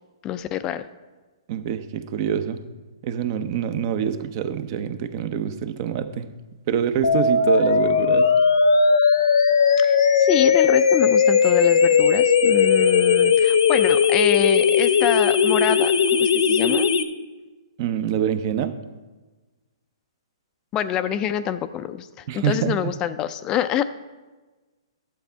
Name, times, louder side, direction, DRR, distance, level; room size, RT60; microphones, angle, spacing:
voice 1, 0.2-0.9 9.8-15.9 16.2-16.9 20.7-23.8, left 10 dB, 25° left, 12 dB, 0.4 m, -26 dB
voice 2, 1.5-2.6 3.0-6.3 6.7-8.3 17.8-18.8 22.3-22.9, right 9 dB, 40° right, 11 dB, 0.7 m, -25 dB
sound 1, 7.0-17.0, left 6 dB, 75° left, 0.8 m, -18 dB
11.0 x 7.3 x 4.5 m, 1.2 s
hypercardioid pair, 140°, 3 cm